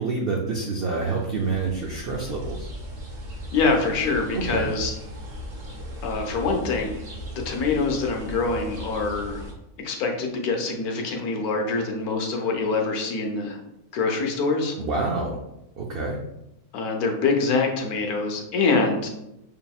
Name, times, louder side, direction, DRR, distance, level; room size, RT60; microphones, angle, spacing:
voice 1, 0.0-2.7 4.3-4.7 14.8-15.4 15.8-16.2, right 3 dB, 85° right, -1 dB, 0.5 m, -27 dB
sound 1, 0.9-9.5, equal, 45° right, 0.6 m, -37 dB
voice 2, 3.5-4.9 6.0-7.0 7.3-9.4 9.8-13.6 13.9-14.7 16.7-19.1, left 4 dB, 75° left, 1 dB, 1.2 m, -25 dB
5.3 x 2.8 x 2.3 m, 0.87 s
omnidirectional pair, 1.6 m